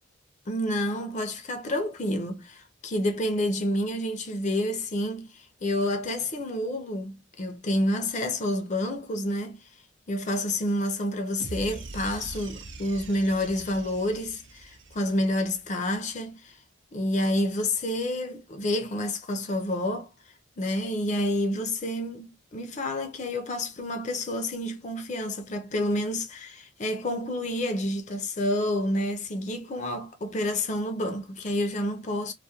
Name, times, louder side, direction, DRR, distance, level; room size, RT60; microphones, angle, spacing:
voice 1, 0.5-9.7 10.1-16.6 16.9-20.1 20.6-32.3, left 1 dB, 35° left, 0.4 m, -29 dB
sound 1, 11.4-15.7, right 2 dB, 65° right, 0.5 m, -42 dB
2.3 x 2.1 x 2.7 m
head